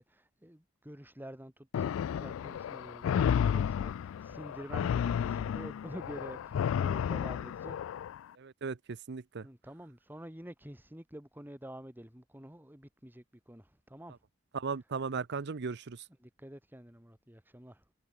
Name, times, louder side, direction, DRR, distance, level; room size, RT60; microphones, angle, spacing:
voice 1, 0.0-7.8 9.4-14.2 16.2-17.8, right 1 dB, 10° right, 2.5 m, -48 dB
sound 1, 1.7-8.2, left 8 dB, 90° left, 0.3 m, -32 dB
voice 2, 8.4-9.5 14.5-16.1, right 5 dB, 60° right, 0.6 m, -37 dB
head